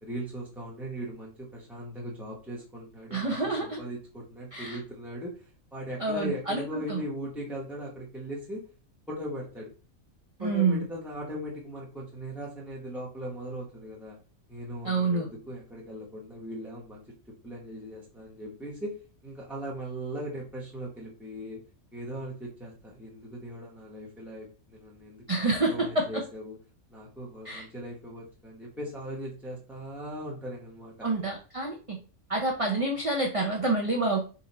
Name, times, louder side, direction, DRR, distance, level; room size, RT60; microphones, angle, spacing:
voice 1, 0.0-5.4 5.7-8.6 9.1-9.7 10.4-14.2 14.5-19.0 19.2-21.6 21.9-26.6 26.9-30.9, equal, ahead, -5 dB, 0.6 m, -39 dB
voice 2, 3.1-3.8 4.5-4.8 6.0-7.0 10.4-10.8 14.8-15.3 25.3-26.2 27.4-27.7 31.0-32.0 32.3-34.2, right 3 dB, 45° right, 0 dB, 0.4 m, -28 dB
3.9 x 2.5 x 4.0 m, 0.36 s
omnidirectional pair, 1.5 m